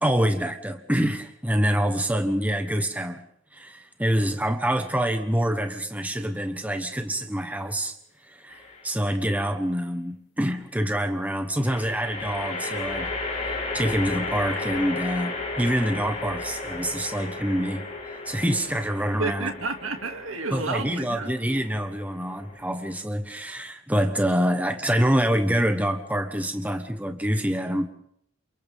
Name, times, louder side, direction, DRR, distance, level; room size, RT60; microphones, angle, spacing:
voice 1, 0.0-3.2 3.5-7.9 8.2-13.1 13.5-17.8 18.2-19.5 20.5-27.9, equal, 5° right, 6 dB, 1.3 m, -26 dB
sound 1, 8.5-9.1 11.6-23.0, left 3 dB, 35° left, 5.6 m, -34 dB
voice 2, 19.2-21.4, right 3 dB, 80° right, 5 dB, 2.5 m, -31 dB
29.0 x 29.0 x 3.7 m, 0.67 s
head